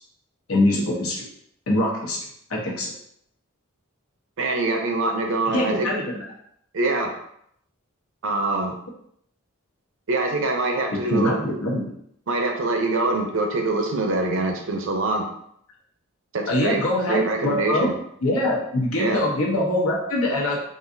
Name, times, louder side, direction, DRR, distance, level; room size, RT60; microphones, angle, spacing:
voice 1, 0.5-1.3 1.7-2.2 2.5-2.9 5.5-6.2 11.1-11.9 16.5-17.9 18.2-20.6, left 1 dB, 75° left, -2 dB, 1.0 m, -23 dB
voice 2, 4.4-5.9 6.7-7.1 8.2-8.7 10.1-11.3 12.3-15.3 16.3-16.8 17.1-17.9 19.0-19.2, right 2 dB, 60° right, 3 dB, 0.6 m, -24 dB
3.9 x 2.5 x 2.6 m, 0.70 s
head